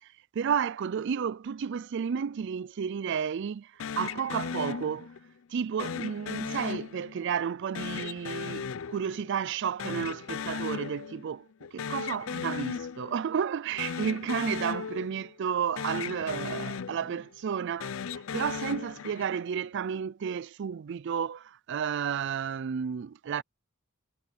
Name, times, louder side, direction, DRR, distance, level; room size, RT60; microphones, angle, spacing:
voice 1, 0.3-5.1 5.5-23.4, right 7 dB, 60° right, 0.4 m, -32 dB
sound 1, 3.8-5.3 5.8-7.3 7.7-9.5 9.8-11.3 11.6-13.3 13.7-15.5 15.8-17.3 17.7-19.5, left 6 dB, 70° left, 0.5 m, -37 dB
head